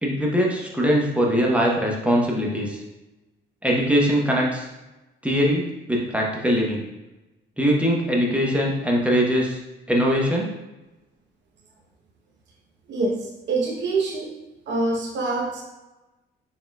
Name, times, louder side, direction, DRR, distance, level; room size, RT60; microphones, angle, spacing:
voice 1, 0.0-2.8 3.6-4.7 5.2-6.8 7.6-9.6 9.9-10.5, equal, 5° right, -2 dB, 0.9 m, -21 dB
voice 2, 12.9-13.2 13.5-14.3 14.7-15.6, right 3 dB, 65° right, -1 dB, 0.9 m, -25 dB
4.2 x 3.8 x 2.3 m, 1.0 s
cardioid pair, 90°, 20 cm